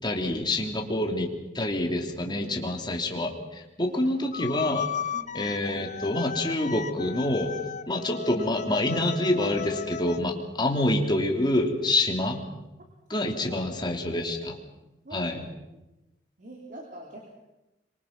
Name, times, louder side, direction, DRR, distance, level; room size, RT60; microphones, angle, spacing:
voice 1, 0.0-4.9 5.3-7.6 7.9-12.4 13.1-14.6 15.1-15.4, left 1 dB, 25° left, 2 dB, 3.1 m, -27 dB
voice 2, 2.2-2.7 3.8-4.1 5.1-5.3 13.1-13.2 13.5-14.4 15.0-15.4 16.4-17.3, right 1 dB, 50° right, 0 dB, 3.9 m, -45 dB
sound 1, 4.3-10.2, left 7 dB, 45° left, 0.8 m, -35 dB
26.0 x 24.5 x 6.0 m, 0.97 s
head